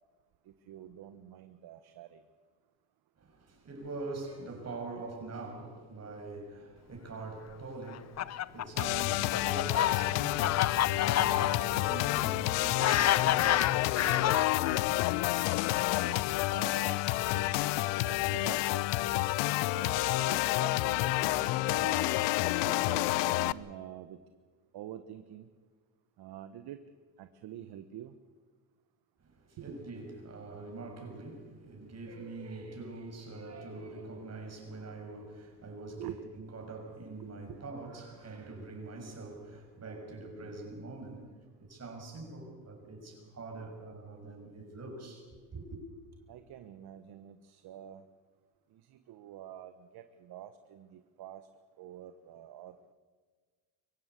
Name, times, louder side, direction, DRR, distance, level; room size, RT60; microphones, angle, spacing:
voice 1, 0.5-2.2 15.7-17.0 17.2-19.1 19.7-24.2 24.7-25.5 26.2-26.8 27.2-28.1 29.6-29.8 36.0-36.3 37.2-37.6 46.3-48.0 48.7-51.5 51.8-52.9, right 11 dB, 60° right, 1.2 m, -47 dB
voice 2, 3.2-15.0 29.2-45.8, right 3 dB, 35° right, 6.6 m, -44 dB
Fowl, 7.9-14.8 15.6-17.7, left 11 dB, 40° left, 0.7 m, -31 dB
sound 1, 8.8-23.5, left 19 dB, 80° left, 0.7 m, -29 dB
24.0 x 15.5 x 8.3 m
supercardioid pair, 90°, 43 cm